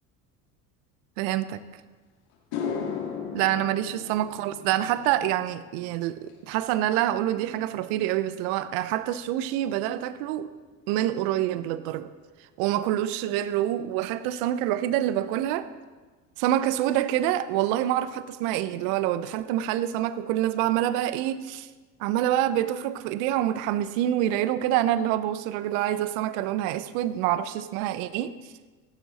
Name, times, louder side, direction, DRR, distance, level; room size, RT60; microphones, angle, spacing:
voice 1, 1.2-1.6 3.3-10.5 10.9-12.1 12.6-15.7 16.4-21.7 22.0-28.3, right 12 dB, 70° right, 0.8 m, -26 dB
sound 1, 1.8-1.9 2.3-10.8 11.1-11.5 15.1-15.2 16.9-17.0 17.3-17.4 17.7-18.2, left 6 dB, 65° left, 2.8 m, -39 dB
16.0 x 11.5 x 4.2 m
hypercardioid pair, 70°, 45 cm